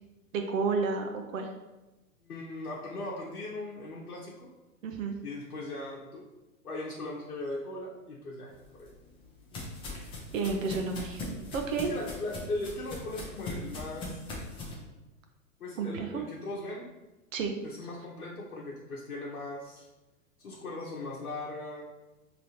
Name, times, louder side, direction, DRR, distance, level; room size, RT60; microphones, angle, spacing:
voice 1, 0.3-1.5 4.8-5.1 9.9-10.0 10.3-11.2 11.5-11.9 15.8-16.2 17.3-17.5, right 4 dB, 65° right, 4 dB, 0.7 m, -31 dB
voice 2, 2.2-4.5 5.2-6.2 6.6-8.9 11.8-14.2 15.6-16.9 17.6-19.9 20.4-21.8, left 2 dB, 85° left, -4 dB, 0.9 m, -39 dB
sound 1, 8.6-14.7, left 2 dB, 10° left, 0.4 m, -40 dB
4.8 x 3.0 x 2.7 m, 1.1 s
hypercardioid pair, 115°, 43 cm